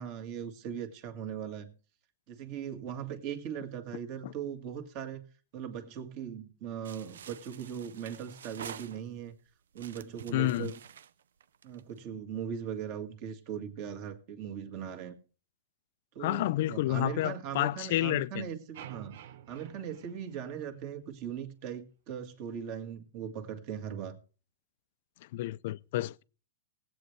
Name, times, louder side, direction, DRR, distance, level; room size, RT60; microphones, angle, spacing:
voice 1, 0.0-1.7 2.3-5.3 5.5-9.3 9.7-10.8 11.6-15.2 16.1-19.2 19.5-24.2, right 8 dB, 40° right, 1.8 m, -39 dB
sound 1, 6.8-9.3 9.7-12.0, right 8 dB, 80° right, 0.6 m, -48 dB
voice 2, 10.3-10.7 16.2-18.5 25.3-26.2, left 16 dB, 50° left, 0.4 m, -30 dB
sound 2, 18.7-21.0, right 10 dB, 60° right, 0.9 m, -50 dB
19.0 x 8.0 x 3.3 m
hypercardioid pair, 150°, 0 cm